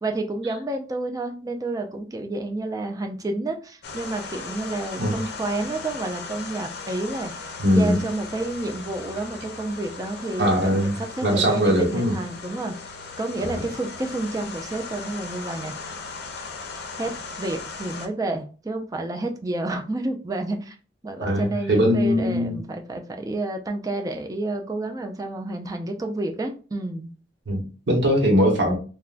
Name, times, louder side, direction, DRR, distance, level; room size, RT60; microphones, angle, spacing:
voice 1, 0.0-12.7 13.2-15.7 17.0-17.1 17.4-20.8 21.0-27.1, right 2 dB, 20° right, 0.4 m, -30 dB
sound 1, 3.8-18.1, left 4 dB, 60° left, 0.5 m, -38 dB
voice 2, 7.6-8.0 10.4-10.9 11.2-12.2 13.4-13.6 21.2-22.6 27.5-28.8, equal, 75° right, 1.0 m, -21 dB
3.5 x 2.2 x 2.4 m
head